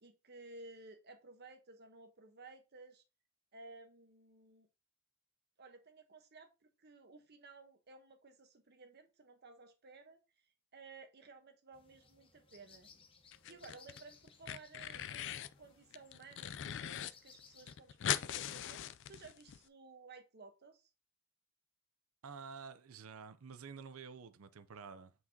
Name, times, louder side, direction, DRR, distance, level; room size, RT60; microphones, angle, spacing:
voice 1, 0.0-3.0 3.5-4.7 5.6-6.5 6.8-10.2 10.7-12.9 13.5-20.9, right 3 dB, 50° right, 1.0 m, -56 dB
sound 1, 11.7-17.8, left 5 dB, 25° left, 0.9 m, -64 dB
sound 2, 13.3-14.0 14.3-15.5 15.9-17.1 17.4-17.5 17.7-19.6, left 10 dB, 60° left, 0.4 m, -40 dB
voice 2, 22.2-25.1, right 5 dB, 75° right, 0.6 m, -50 dB
8.2 x 4.7 x 2.8 m
head